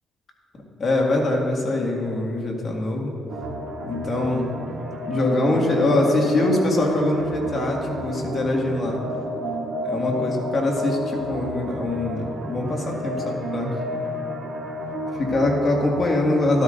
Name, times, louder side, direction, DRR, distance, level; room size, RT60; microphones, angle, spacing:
voice 1, 0.8-3.1 3.8-4.5 5.1-9.0 9.8-13.7 15.2-16.6, left 2 dB, 45° left, 0 dB, 2.0 m, -23 dB
sound 1, 3.3-16.1, equal, 70° right, 1.6 m, -31 dB
13.0 x 12.5 x 2.6 m, 3.0 s
cardioid pair, 90°, 0 cm